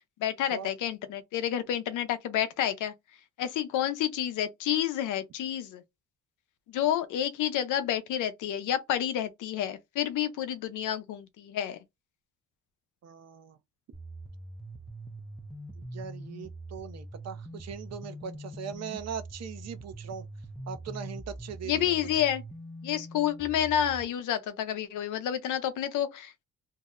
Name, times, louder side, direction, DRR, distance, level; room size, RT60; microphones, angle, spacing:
voice 1, 0.2-2.9 3.4-5.8 6.7-11.8 21.7-22.4 22.8-26.4, left 10 dB, 85° left, 0.7 m, -29 dB
voice 2, 13.0-13.6 15.8-20.3 20.7-22.2, right 7 dB, 60° right, 0.6 m, -40 dB
sound 1, 13.9-24.0, right 1 dB, ahead, 0.4 m, -43 dB
2.7 x 2.1 x 3.6 m
cardioid pair, 90°, 30 cm